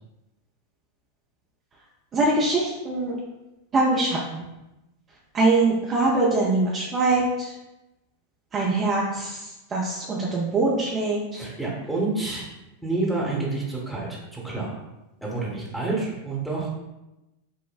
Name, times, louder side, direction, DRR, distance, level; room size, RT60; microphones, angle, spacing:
voice 1, 2.1-3.2 3.7-4.4 5.3-7.5 8.5-11.4, right 2 dB, 25° right, -4 dB, 0.5 m, -23 dB
voice 2, 11.3-12.5 12.8-14.8 15.2-16.7, right 3 dB, 5° right, -5 dB, 1.0 m, -28 dB
5.5 x 2.1 x 2.3 m, 0.99 s
figure-of-eight pair, 90°, 0 cm